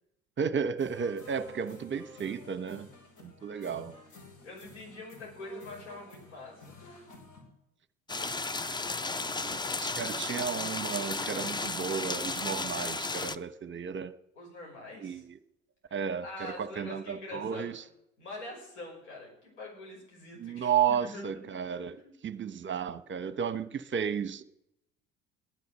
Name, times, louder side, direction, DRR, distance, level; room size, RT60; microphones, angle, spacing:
voice 1, 0.4-2.9 3.2-3.9 9.4-14.1 15.0-15.4 15.9-17.8 20.4-24.4, right 7 dB, 35° right, 0.9 m, -33 dB
sound 1, 0.8-7.4, left 2 dB, 65° left, 5.7 m, -52 dB
voice 2, 4.4-7.1 14.4-15.2 15.9-17.8 18.2-21.6 22.0-22.1 23.2-23.3, left 2 dB, 85° left, 6.1 m, -45 dB
sound 2, 8.1-13.3, left 3 dB, 15° left, 0.6 m, -34 dB
16.5 x 10.5 x 6.6 m
hypercardioid pair, 65°, 34 cm